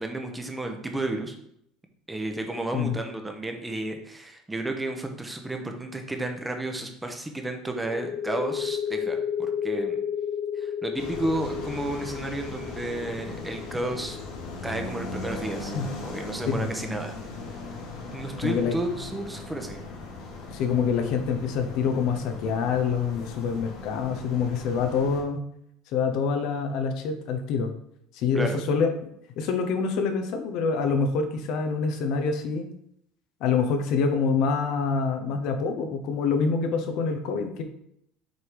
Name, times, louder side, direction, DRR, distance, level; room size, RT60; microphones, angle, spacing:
voice 1, 0.0-1.4 2.1-10.0 10.5-14.2 14.6-15.7 16.0-17.1 18.1-19.8 28.3-28.6, right 2 dB, 10° right, 4 dB, 0.9 m, -32 dB
sound 1, 7.8-15.2, left 8 dB, 25° left, 1.2 m, -32 dB
sound 2, 10.9-25.2, left 3 dB, 80° left, 2.4 m, -38 dB
voice 2, 18.4-18.7 20.5-25.4 25.9-27.7 28.1-28.9 29.4-32.7 33.4-37.6, left 5 dB, 60° left, 6 dB, 1.0 m, -26 dB
6.4 x 3.6 x 4.8 m, 0.73 s
cardioid pair, 135°, 0 cm